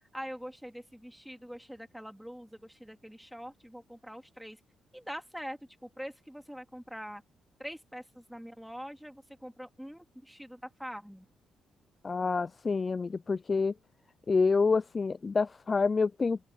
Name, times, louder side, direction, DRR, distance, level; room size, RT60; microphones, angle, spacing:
voice 1, 0.1-4.6 4.9-5.6 6.0-7.2 7.6-11.2, equal, ahead, 3.2 m, -44 dB
voice 2, 12.0-13.7 14.3-16.4, left 4 dB, 30° left, 0.3 m, -27 dB
open air
cardioid pair, 90°, 0 cm